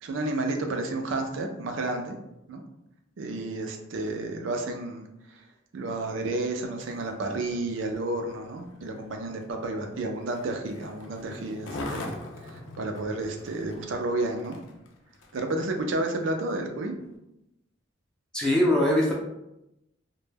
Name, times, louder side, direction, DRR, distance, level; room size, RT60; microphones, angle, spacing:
voice 1, 0.0-2.2 2.5-2.6 3.2-5.4 5.7-12.2 12.5-14.6 15.3-16.9, right 2 dB, 75° right, 4 dB, 0.4 m, -31 dB
Skateboard, 6.7-15.5 16.1-16.2, left 1 dB, 80° left, 0.4 m, -43 dB
voice 2, 18.3-19.1, left 1 dB, 5° left, -3 dB, 0.4 m, -21 dB
2.1 x 2.1 x 3.2 m, 0.89 s
head